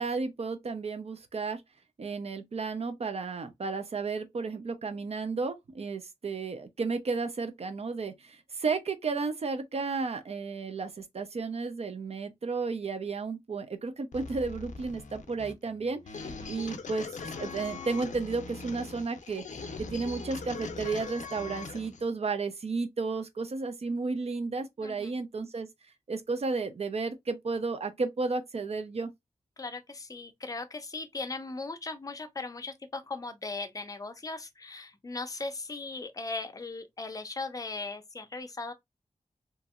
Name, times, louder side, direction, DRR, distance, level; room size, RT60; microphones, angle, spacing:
voice 1, 0.0-1.6 2.0-16.2 16.5-17.1 17.4-19.4 19.8-25.7 26.1-29.1, right 4 dB, 55° right, 0.6 m, -33 dB
sound 1, 14.1-22.1, left 4 dB, 85° left, 0.5 m, -41 dB
voice 2, 16.2-16.5 24.8-25.1 29.6-38.7, left 3 dB, 30° left, 0.5 m, -38 dB
2.9 x 2.6 x 2.4 m
wide cardioid pair, 115°, 12 cm